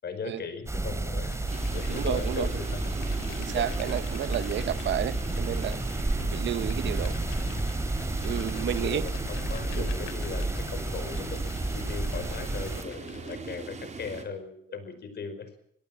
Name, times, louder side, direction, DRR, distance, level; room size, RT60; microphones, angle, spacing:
voice 1, 0.0-1.4 1.7-3.0 3.5-3.7 6.2-6.5 8.3-15.5, left 5 dB, 55° left, 5.3 m, -39 dB
sound 1, 0.7-12.8, right 2 dB, 15° right, 4.2 m, -31 dB
sound 2, 1.3-13.7, left 10 dB, 85° left, 3.0 m, -45 dB
sound 3, 1.5-14.2, right 4 dB, 35° right, 4.0 m, -41 dB
voice 2, 1.9-2.5 3.4-5.8 6.3-7.1 8.2-9.0, right 10 dB, 65° right, 1.0 m, -31 dB
25.5 x 18.0 x 6.1 m
cardioid pair, 90°, 20 cm